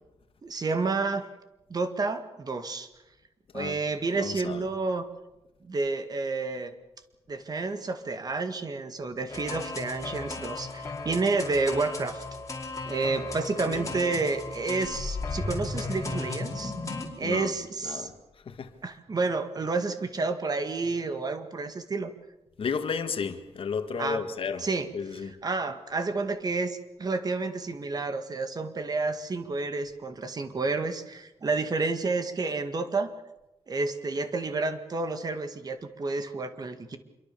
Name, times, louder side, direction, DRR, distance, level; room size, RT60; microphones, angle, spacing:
voice 1, 0.4-1.3 1.7-2.9 3.5-5.1 5.6-6.7 7.3-12.2 12.8-16.7 17.2-18.1 18.8-22.1 24.0-24.2 24.6-33.1 33.7-37.0, right 3 dB, 35° right, 2.0 m, -30 dB
voice 2, 4.1-4.7 13.7-14.2 17.2-18.1 18.5-18.7 22.6-24.7 24.9-25.3, left 5 dB, 55° left, 1.9 m, -33 dB
sound 1, 9.3-17.1, left 3 dB, 30° left, 4.9 m, -35 dB
26.5 x 23.0 x 7.0 m
wide cardioid pair, 155°, 11 cm